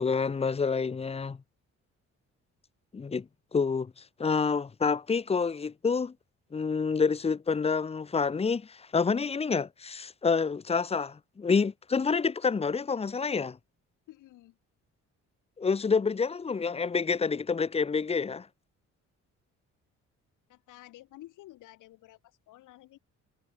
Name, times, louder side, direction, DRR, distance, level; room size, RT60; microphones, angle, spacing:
voice 1, 0.0-1.4 2.9-3.9 4.2-6.1 6.5-13.6 15.6-18.5, left 5 dB, 20° left, 0.6 m, -28 dB
voice 2, 14.1-14.6 20.5-23.0, left 16 dB, 90° left, 3.1 m, -52 dB
cardioid pair, 90°, 30 cm